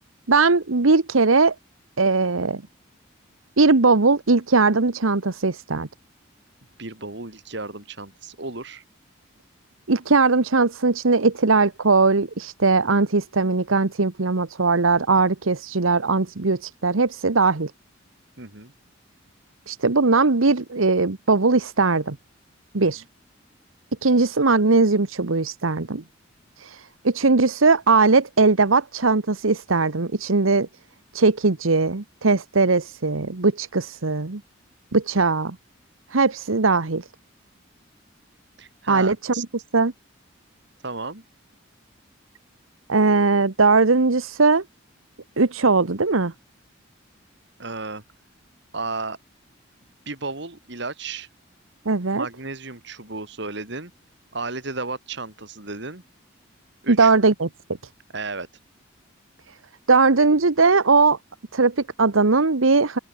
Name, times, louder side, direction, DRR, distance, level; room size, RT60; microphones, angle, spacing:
voice 1, 0.3-1.5 2.0-2.6 3.6-5.9 9.9-17.7 19.7-22.2 22.7-23.0 24.0-26.0 26.6-30.7 31.1-34.4 34.9-35.6 36.1-37.0 38.9-39.5 39.7-39.9 42.9-44.6 45.4-46.3 51.8-52.3 56.9-57.5 59.9-61.2 61.5-63.0, right 3 dB, 90° right, 1.2 m, -19 dB
voice 2, 6.8-8.8 18.4-18.7 22.8-22.9 38.6-39.4 40.8-41.2 47.6-48.0 48.7-49.2 50.1-51.3 52.1-53.9 54.3-56.0 56.8-57.1 58.1-58.5, right 3 dB, 60° right, 3.0 m, -33 dB
open air
head